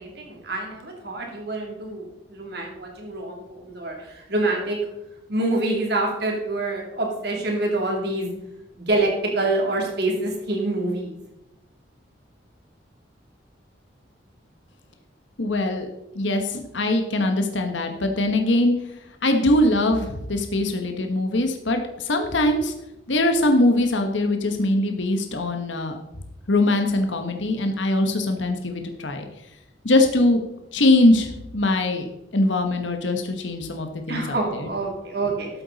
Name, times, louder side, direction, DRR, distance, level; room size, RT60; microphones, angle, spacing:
voice 1, 0.0-4.9 5.3-8.3 8.8-11.1 34.1-35.5, right 2 dB, 60° right, 0 dB, 2.9 m, -26 dB
voice 2, 15.4-15.9 16.1-18.7 19.2-22.7 23.1-25.9 26.5-29.2 29.8-30.4 30.7-32.1 32.3-34.7, left 1 dB, 80° left, 5 dB, 1.2 m, -22 dB
13.0 x 8.2 x 4.0 m, 0.89 s
head